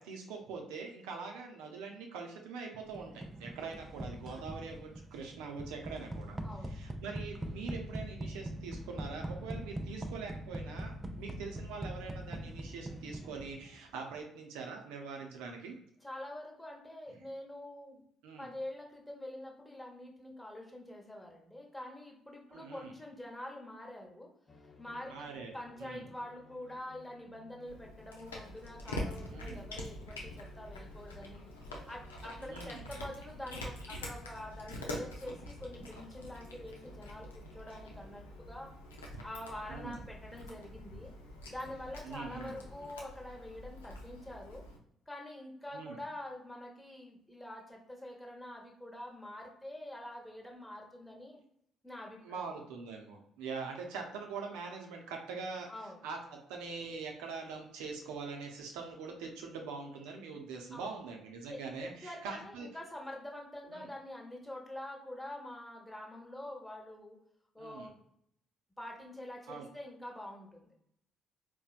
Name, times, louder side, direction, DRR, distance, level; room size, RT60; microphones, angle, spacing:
voice 1, 0.0-6.4 6.7-15.7 17.1-17.2 18.2-18.5 22.5-22.9 25.1-25.5 25.8-26.1 29.3-29.6 32.4-32.9 39.7-40.0 42.0-42.6 45.7-46.0 52.2-55.7 56.0-62.7 63.7-63.9 67.6-67.9 69.5-69.7, right 4 dB, 75° right, 2 dB, 0.6 m, -43 dB
sound 1, 2.9-13.8, right 1 dB, 20° right, 0.4 m, -42 dB
voice 2, 6.4-6.8 16.0-18.0 18.4-24.3 24.8-31.4 31.9-38.7 39.2-41.1 41.5-44.6 45.1-51.4 51.8-52.5 55.7-56.0 60.7-60.9 61.5-67.2 67.5-68.0 68.8-70.7, left 1 dB, 10° left, -1 dB, 1.1 m, -46 dB
sound 2, 24.5-42.9, left 3 dB, 40° left, 0.5 m, -59 dB
Cat, 27.7-44.8, left 1 dB, 85° left, 0.5 m, -45 dB
4.1 x 2.1 x 2.4 m, 0.73 s
hypercardioid pair, 50°, 0 cm